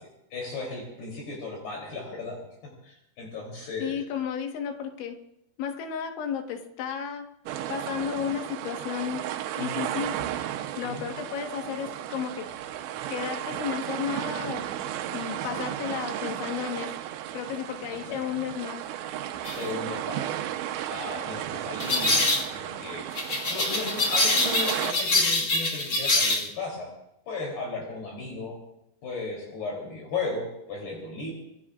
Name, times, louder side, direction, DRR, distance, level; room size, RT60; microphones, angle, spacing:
voice 1, 0.0-4.0 9.6-9.9 10.8-11.1 15.3-15.6 17.9-18.2 19.6-20.4 20.9-22.2 22.5-23.1 23.5-26.9 27.3-28.6 29.0-31.3, left 3 dB, 60° left, -1 dB, 5.2 m, -36 dB
voice 2, 3.8-5.2 5.6-7.3 7.7-9.3 9.6-10.2 10.8-12.5 13.1-14.7 15.1-16.9 17.3-18.8, left 8 dB, 85° left, 3 dB, 3.9 m, -33 dB
sound 1, 7.5-24.9, right 11 dB, 80° right, 3.2 m, -34 dB
sound 2, 19.4-19.6 21.8-22.5 23.1-26.5, left 2 dB, 45° left, 1.6 m, -25 dB
27.5 x 20.0 x 2.5 m, 0.83 s
omnidirectional pair, 5.2 m